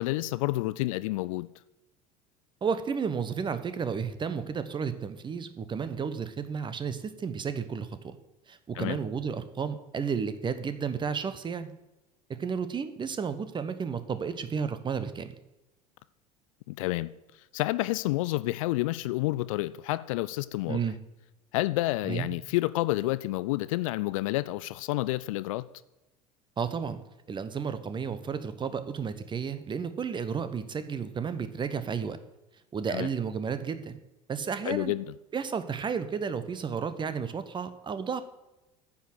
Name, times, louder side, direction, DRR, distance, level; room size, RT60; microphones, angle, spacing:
voice 1, 0.0-1.5 8.8-9.0 16.7-17.1 17.5-20.8 21.5-25.7 32.9-33.1 34.6-35.1, left 18 dB, 55° left, 0.4 m, -29 dB
voice 2, 2.6-8.2 8.5-11.7 12.4-15.3 20.7-21.0 22.0-22.3 26.6-27.0 27.3-32.2 32.7-34.0 34.3-34.9 35.3-38.2, right 6 dB, 25° right, 0.9 m, -32 dB
9.5 x 6.2 x 6.4 m
figure-of-eight pair, 70°, 20 cm